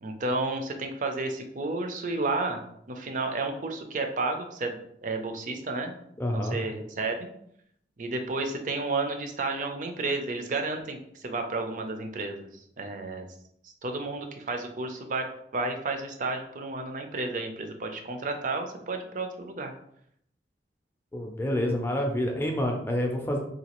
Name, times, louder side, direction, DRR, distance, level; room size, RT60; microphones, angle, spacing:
voice 1, 0.0-2.6 2.9-5.9 6.3-7.3 8.0-12.5 12.8-13.3 13.6-15.3 15.5-19.7, right 3 dB, 45° right, 5 dB, 0.5 m, -31 dB
voice 2, 6.2-6.6 21.1-23.4, left 1 dB, 15° left, 2 dB, 0.5 m, -28 dB
3.9 x 2.3 x 2.9 m, 0.72 s
head